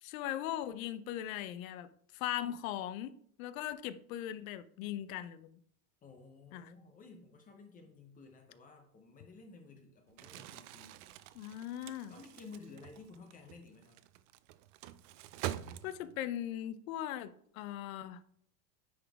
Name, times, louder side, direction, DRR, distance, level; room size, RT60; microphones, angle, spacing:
voice 1, 0.0-1.9 2.1-5.5 6.5-6.7 11.4-12.1 15.8-18.2, left 12 dB, 75° left, 0.7 m, -39 dB
voice 2, 6.0-11.0 12.1-14.0, left 4 dB, 20° left, 0.6 m, -54 dB
Crumpling crinkling, 10.1-16.3, right 13 dB, 60° right, 0.5 m, -46 dB
9.6 x 3.9 x 3.4 m
supercardioid pair, 155°, 41 cm